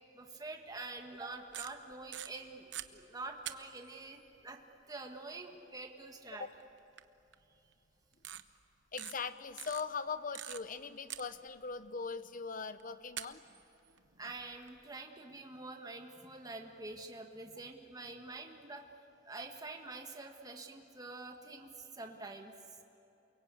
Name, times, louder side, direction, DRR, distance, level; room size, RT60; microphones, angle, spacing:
voice 1, 0.1-4.2 4.4-4.6 4.9-6.5 14.2-18.9 19.3-22.5, right 3 dB, 20° right, 3 dB, 1.7 m, -46 dB
sound 1, 1.3-2.9 3.4-4.0 5.8-5.9 7.0-7.1 7.3-7.4 8.1-8.4 9.0-9.1 9.6-10.8 11.1-11.8 12.8-12.9 13.2-14.8, right 12 dB, 70° right, 0.9 m, -44 dB
voice 2, 8.9-13.4, left 5 dB, 50° left, 12 dB, 0.9 m, -40 dB
29.5 x 23.0 x 8.3 m, 2.9 s
head